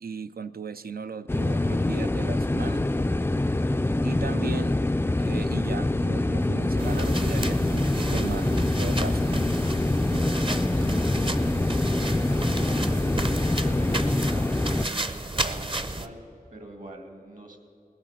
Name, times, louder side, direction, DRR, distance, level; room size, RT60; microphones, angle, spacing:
voice 1, 0.0-2.9 4.0-4.8 5.2-9.4, right 5 dB, 80° right, 12 dB, 0.5 m, -36 dB
sound 1, 1.3-14.9, left 2 dB, 15° left, 0.3 m, -25 dB
sound 2, 6.8-16.1, right 2 dB, 35° right, 0.8 m, -33 dB
voice 2, 10.1-13.0 13.6-16.2 16.5-17.6, right 1 dB, 60° right, 4 dB, 2.5 m, -42 dB
20.0 x 8.7 x 7.5 m, 2.7 s
wide cardioid pair, 55°, 15 cm